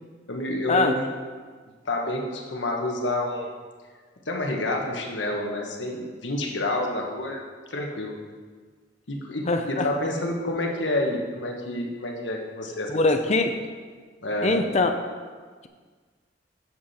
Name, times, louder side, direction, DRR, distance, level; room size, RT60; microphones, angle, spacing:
voice 1, 0.3-1.1 1.8-3.5 4.3-7.4 7.7-8.2 9.1-12.9 14.2-14.6, left 1 dB, 85° left, 1 dB, 1.3 m, -28 dB
voice 2, 9.5-9.9 12.9-13.5 14.4-14.9, left 3 dB, 40° left, 6 dB, 0.5 m, -22 dB
8.5 x 7.7 x 4.2 m, 1.5 s
head